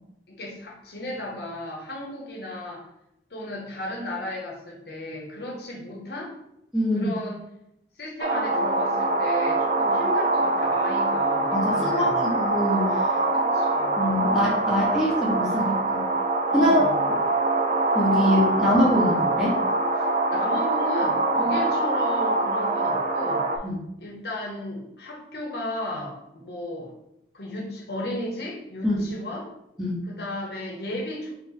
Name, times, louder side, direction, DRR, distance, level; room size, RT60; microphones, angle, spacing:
voice 1, 0.3-2.9 3.3-6.4 6.9-7.4 8.0-12.2 13.3-14.0 14.9-15.0 16.5-17.0 18.5-18.6 19.9-23.5 24.0-26.9 27.3-29.5 30.1-31.3, left 1 dB, 65° left, -2 dB, 0.9 m, -34 dB
voice 2, 6.7-7.1 11.5-13.0 14.0-16.0 16.5-16.8 17.9-19.6 23.6-23.7 28.8-28.9 29.8-30.0, equal, 5° right, -7 dB, 1.2 m, -23 dB
sound 1, 8.2-23.6, right 2 dB, 40° right, 0.4 m, -24 dB
4.4 x 2.5 x 4.0 m, 0.81 s
head